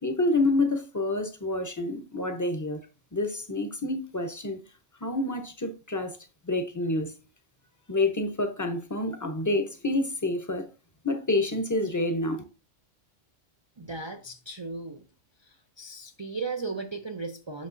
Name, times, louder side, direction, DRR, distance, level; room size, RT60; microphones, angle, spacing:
voice 1, 0.0-2.8 3.1-4.6 5.0-6.2 6.4-7.1 7.9-10.7 11.0-12.4, left 2 dB, 15° left, 0.8 m, -28 dB
voice 2, 13.8-15.1 15.4-17.7, right 3 dB, 35° right, 0.5 m, -36 dB
8.4 x 6.5 x 2.6 m
omnidirectional pair, 1.3 m